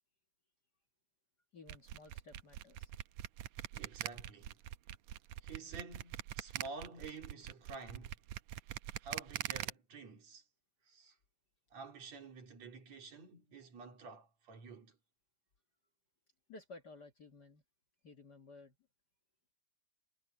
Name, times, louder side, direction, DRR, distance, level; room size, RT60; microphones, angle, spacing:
voice 1, 1.5-2.9 16.5-17.6 18.0-18.7, left 3 dB, 50° left, 1.2 m, -55 dB
sound 1, 1.7-9.7, right 12 dB, 75° right, 1.6 m, -43 dB
voice 2, 3.7-4.6 5.4-8.2 9.0-10.4 10.8-11.2 11.7-15.0, right 4 dB, 50° right, 4.1 m, -50 dB
omnidirectional pair, 4.0 m